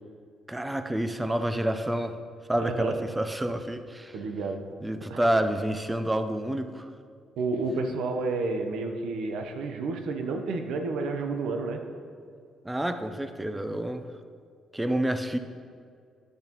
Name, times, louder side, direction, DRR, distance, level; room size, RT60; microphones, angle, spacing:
voice 1, 0.5-2.2 2.5-4.1 4.8-6.9 12.6-14.1 14.7-15.4, right 1 dB, 10° right, 8 dB, 0.5 m, -28 dB
voice 2, 2.6-3.0 4.1-4.6 5.0-5.2 7.4-11.8, right 3 dB, 85° right, 5 dB, 0.7 m, -30 dB
10.0 x 6.6 x 3.0 m, 2.2 s
cardioid pair, 90°, 0 cm